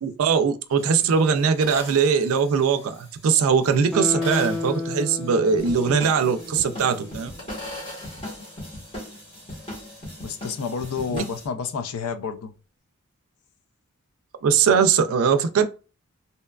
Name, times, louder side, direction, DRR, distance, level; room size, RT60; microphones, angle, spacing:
voice 1, 0.0-7.3 14.4-15.7, right 6 dB, 75° right, 0.3 m, -21 dB
sound 1, 0.7-11.2, left 1 dB, 60° left, 1.4 m, -43 dB
Guitar, 3.9-7.2 7.5-7.6, left 3 dB, ahead, 0.4 m, -31 dB
sound 2, 5.6-11.5, left 1 dB, 25° left, 0.9 m, -39 dB
voice 2, 10.2-12.5, left 6 dB, 80° left, 0.4 m, -30 dB
2.7 x 2.3 x 2.2 m
head